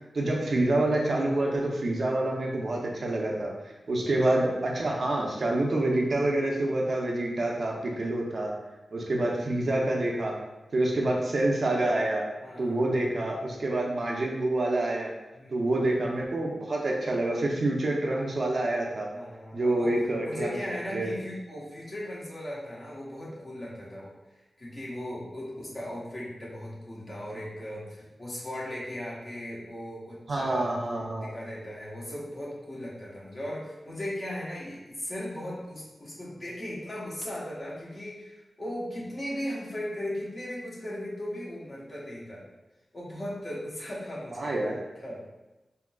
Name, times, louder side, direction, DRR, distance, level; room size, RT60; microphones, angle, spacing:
voice 1, 0.1-3.5 3.9-8.5 8.9-10.3 10.7-12.2 12.6-15.1 15.5-19.1 19.5-20.5 20.9-21.1 30.3-31.3 44.3-44.7, right 1 dB, 55° right, -1 dB, 0.6 m, -27 dB
voice 2, 12.4-13.1 15.3-15.7 19.1-19.9 20.2-24.1 24.6-30.8 31.2-42.4 42.9-44.5 45.0-45.2, left 1 dB, 40° left, -5 dB, 0.9 m, -37 dB
3.7 x 2.7 x 2.3 m, 1.1 s
wide cardioid pair, 120°, 0 cm